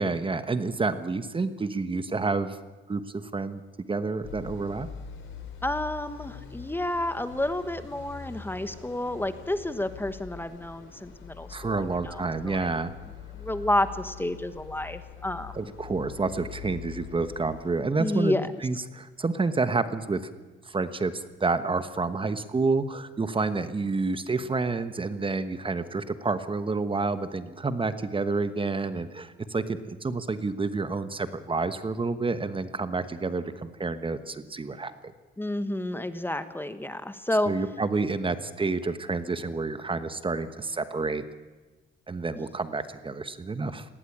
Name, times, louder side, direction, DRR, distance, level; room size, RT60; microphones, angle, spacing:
voice 1, 0.0-2.6 2.9-3.6 3.9-4.9 11.5-12.9 15.5-18.4 18.6-20.2 20.6-34.9 37.5-41.2 42.1-43.9, right 3 dB, 25° right, 11 dB, 1.2 m, -29 dB
sound 1, 4.2-17.8, left 8 dB, 75° left, 4.6 m, -44 dB
voice 2, 5.6-12.7 13.4-15.6 18.0-18.5 35.4-37.5 42.4-42.5, left 1 dB, 10° left, 11 dB, 1.2 m, -30 dB
19.0 x 17.0 x 8.7 m, 1.3 s
cardioid pair, 90°, 20 cm